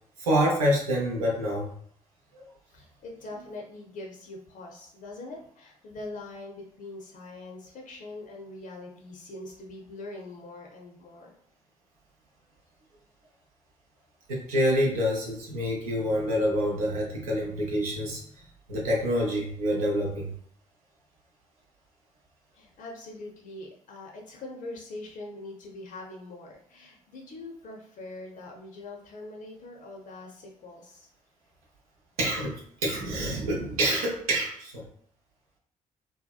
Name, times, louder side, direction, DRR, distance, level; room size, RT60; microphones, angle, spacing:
voice 1, 0.2-1.7 2.3-2.4 14.3-20.3 32.2-34.8, equal, 75° right, -2 dB, 0.6 m, -27 dB
voice 2, 2.7-11.3 22.5-31.1, left 2 dB, 45° left, 0 dB, 0.5 m, -43 dB
2.7 x 2.1 x 2.4 m, 0.62 s
figure-of-eight pair, 45°, 18 cm